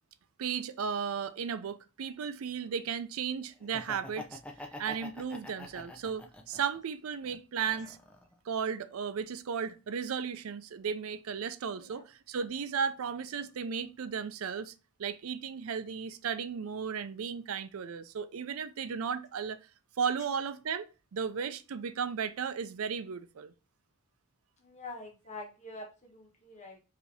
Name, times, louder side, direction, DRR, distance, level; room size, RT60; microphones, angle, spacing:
voice 1, 0.4-4.4 4.8-8.0 8.5-14.7 15.0-19.6 20.0-23.5, right 6 dB, 85° right, 0.4 m, -35 dB
Laughter, 3.6-6.8 7.2-8.3, left 1 dB, 5° left, 0.5 m, -46 dB
voice 2, 24.6-26.8, left 2 dB, 35° left, 1.1 m, -46 dB
4.9 x 2.7 x 3.2 m
head